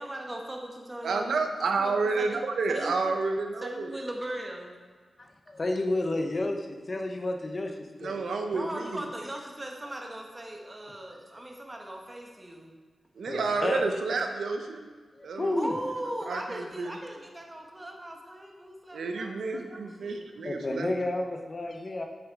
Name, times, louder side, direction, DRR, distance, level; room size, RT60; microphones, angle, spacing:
voice 1, 0.0-1.4 1.8-2.4 2.7-3.0 3.6-4.8 8.5-12.7 15.5-20.3, right 1 dB, 15° right, 1 dB, 1.3 m, -39 dB
voice 2, 1.0-3.9 8.0-9.1 13.2-14.8 15.2-15.5 16.3-17.0 18.9-20.9, right 4 dB, 85° right, 5 dB, 0.9 m, -30 dB
voice 3, 5.2-7.7 8.0-8.1 13.3-13.8 15.2-15.7 20.4-22.1, left 2 dB, 30° left, 3 dB, 0.8 m, -31 dB
8.9 x 7.1 x 4.7 m, 1.5 s
wide cardioid pair, 155°, 0 cm